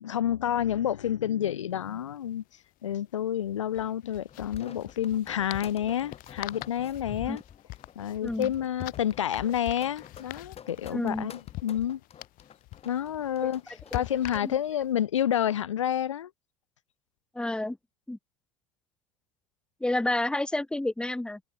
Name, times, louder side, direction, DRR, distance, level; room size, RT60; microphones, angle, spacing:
voice 1, 0.0-2.4 2.8-7.4 8.0-12.0 12.8-13.6 13.9-16.3, left 10 dB, 90° left, 0.5 m, -29 dB
sound 1, 1.7-1.8 2.0-2.2 3.7-14.9, left 19 dB, 65° left, 3.6 m, -44 dB
sound 2, 4.3-14.3, left 8 dB, 40° left, 1.8 m, -48 dB
voice 2, 10.9-11.3 13.9-14.0 14.4-14.5 17.3-17.8 18.1-18.2 19.8-21.4, left 1 dB, 5° left, 0.7 m, -29 dB
hypercardioid pair, 60°, 15 cm